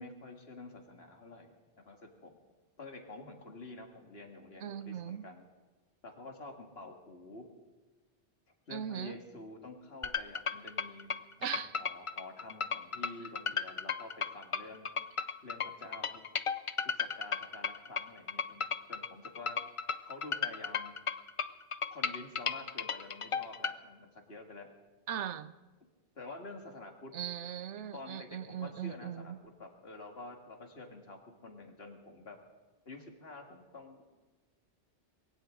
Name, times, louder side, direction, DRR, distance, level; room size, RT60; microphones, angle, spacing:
voice 1, 0.0-2.4 2.8-5.5 6.0-7.5 8.7-14.9 15.4-16.2 16.9-18.6 18.9-19.6 20.0-20.9 21.9-24.7 26.2-27.1 27.9-32.4 32.9-34.0, left 2 dB, 60° left, 2.2 m, -49 dB
voice 2, 4.6-5.3 8.7-9.2 11.4-11.7 25.1-25.5 27.1-29.4, right 9 dB, 80° right, 1.0 m, -39 dB
sound 1, 10.0-23.8, left 6 dB, 45° left, 0.4 m, -35 dB
22.0 x 16.5 x 3.8 m
omnidirectional pair, 1.2 m